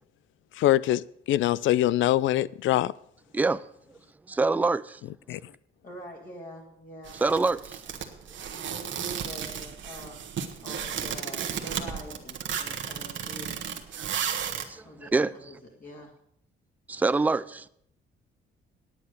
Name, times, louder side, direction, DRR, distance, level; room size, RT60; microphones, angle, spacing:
voice 1, 0.6-2.9 5.3-5.4, left 14 dB, 75° left, 0.4 m, -23 dB
voice 2, 3.3-3.6 4.3-5.0 7.1-7.8 14.0-15.5 16.9-17.7, right 3 dB, 10° right, 0.3 m, -26 dB
voice 3, 5.8-7.2 8.5-10.2 10.6-13.6 14.8-16.1, equal, 45° left, 2.7 m, -45 dB
sound 1, 7.1-14.7, right 8 dB, 70° right, 1.3 m, -34 dB
9.5 x 8.7 x 6.6 m
cardioid pair, 90°, 20 cm